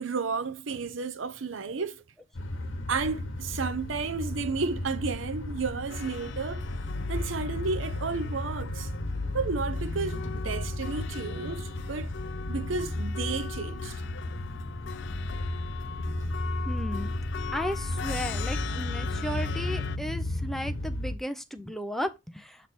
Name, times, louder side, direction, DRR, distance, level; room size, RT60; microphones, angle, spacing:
voice 1, 0.0-2.0 2.9-6.6 7.1-8.9 9.3-12.1 12.5-14.0, right 4 dB, 85° right, 0.7 m, -32 dB
sound 1, 2.4-21.1, left 1 dB, 90° left, 1.1 m, -34 dB
sound 2, 5.9-20.0, left 8 dB, 65° left, 0.4 m, -42 dB
voice 2, 16.7-17.1 17.5-22.6, equal, ahead, 0.6 m, -35 dB
7.4 x 3.4 x 4.2 m
head